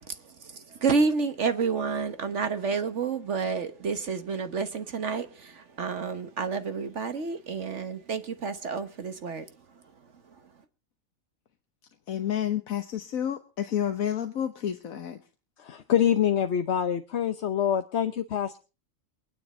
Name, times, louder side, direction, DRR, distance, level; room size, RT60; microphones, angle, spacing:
voice 1, 0.0-9.4, right 5 dB, 60° right, 1.4 m, -29 dB
voice 2, 12.1-15.2, left 10 dB, 90° left, 1.5 m, -30 dB
voice 3, 15.6-18.6, left 9 dB, 60° left, 1.1 m, -25 dB
23.5 x 9.8 x 4.3 m
omnidirectional pair, 1.4 m